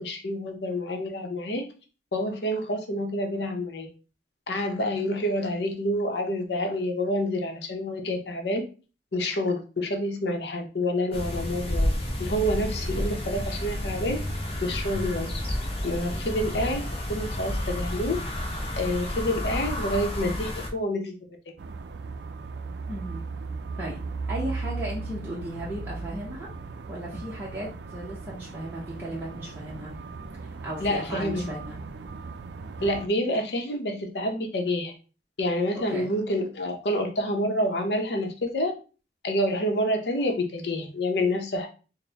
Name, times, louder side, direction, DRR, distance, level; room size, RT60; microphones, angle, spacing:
voice 1, 0.0-1.7 2.1-3.9 4.5-8.7 9.1-11.9 12.2-14.2 14.6-15.3 15.8-18.2 18.8-21.1 30.8-31.5 32.8-34.9 35.4-38.7 39.2-41.7, left 1 dB, 65° left, 4 dB, 0.8 m, -28 dB
sound 1, 11.1-20.7, left 1 dB, 30° left, 0.6 m, -30 dB
sound 2, 21.6-33.1, right 4 dB, 70° right, 0.4 m, -37 dB
voice 2, 22.9-23.2 23.8-24.0 24.3-26.5 26.9-29.9 30.4-31.8 32.8-32.9 35.9-36.1, right 1 dB, 10° right, -7 dB, 0.7 m, -36 dB
4.3 x 2.1 x 3.3 m, 0.35 s
head